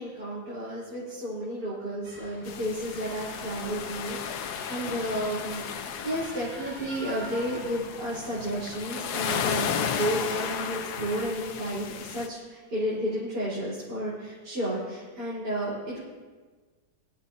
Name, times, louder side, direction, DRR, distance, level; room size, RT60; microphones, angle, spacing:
voice 1, 0.0-16.0, equal, 65° right, -9 dB, 4.4 m, -32 dB
sound 1, 2.0-11.3, right 1 dB, 40° right, 3.2 m, -47 dB
sound 2, 2.4-12.3, left 8 dB, 65° left, 1.2 m, -34 dB
23.0 x 13.5 x 2.7 m, 1.4 s
omnidirectional pair, 2.0 m